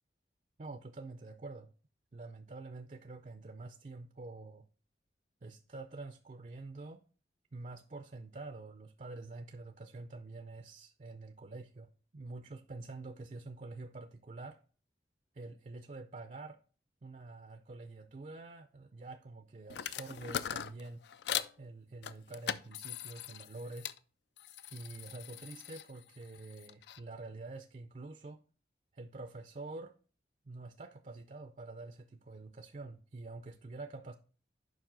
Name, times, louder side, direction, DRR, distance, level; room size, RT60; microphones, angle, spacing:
voice 1, 0.6-1.7 2.1-4.7 5.4-7.0 7.5-14.6 15.3-16.6 17.0-21.0 21.6-23.9 24.7-28.4 28.9-29.9 30.5-34.1, right 3 dB, 40° right, 0.4 m, -47 dB
sound 1, 19.7-21.5 22.0-24.0 24.4-27.0, left 9 dB, 80° left, 0.4 m, -41 dB
7.3 x 5.3 x 3.7 m
head